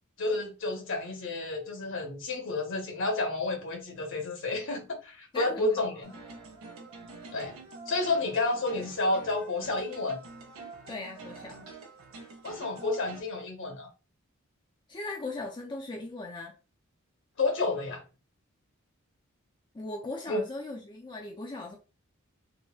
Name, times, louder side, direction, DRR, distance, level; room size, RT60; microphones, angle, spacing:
voice 1, 0.2-6.1 7.3-7.5 7.9-10.2 12.4-13.9 17.4-18.0 20.3-20.4, left 2 dB, 65° left, 0.9 m, -30 dB
voice 2, 5.3-5.9 10.9-11.6 14.9-16.6 19.7-21.8, left 2 dB, 20° left, 0.4 m, -38 dB
sound 1, 6.0-13.2, right 3 dB, 80° right, 0.7 m, -46 dB
3.8 x 2.0 x 2.3 m
head